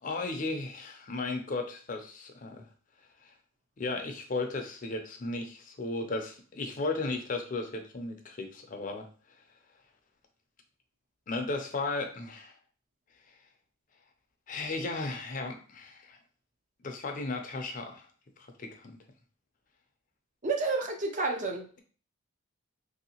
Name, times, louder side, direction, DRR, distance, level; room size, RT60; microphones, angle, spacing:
voice 1, 0.0-2.7 3.2-3.3 3.8-9.1 11.3-12.5 14.5-16.2 16.8-18.1 18.6-18.9, left 3 dB, 40° left, 4 dB, 0.5 m, -35 dB
voice 2, 20.4-21.7, right 3 dB, 35° right, 3 dB, 0.5 m, -30 dB
3.2 x 2.7 x 2.8 m, 0.41 s
head